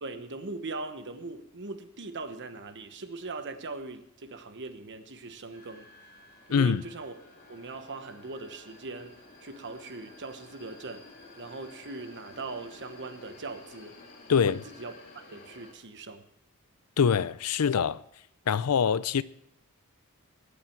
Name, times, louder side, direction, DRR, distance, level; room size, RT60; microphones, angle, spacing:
voice 1, 0.0-5.9 6.5-7.1 7.5-9.1 9.4-11.0 11.4-14.0 14.3-16.2, right 3 dB, 55° right, 1.1 m, -40 dB
sound 1, 5.5-15.7, left 2 dB, 40° left, 2.8 m, -52 dB
voice 2, 6.5-6.8 14.3-14.6 17.0-18.0 18.5-19.2, left 6 dB, 85° left, 0.5 m, -24 dB
20.0 x 8.5 x 4.6 m
head